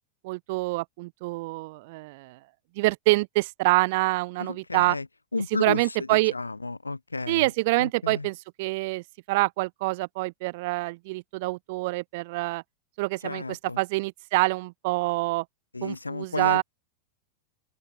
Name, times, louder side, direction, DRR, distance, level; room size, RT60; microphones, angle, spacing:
voice 1, 0.2-2.4 2.8-5.0 5.6-6.3 7.3-12.6 13.0-15.4 15.8-16.6, right 23 dB, 50° right, 0.5 m, -26 dB
voice 2, 4.4-5.1 5.3-7.5 7.8-8.3 13.2-13.8 15.7-16.6, left 3 dB, 80° left, 0.7 m, -33 dB
open air
figure-of-eight pair, 90°, 0 cm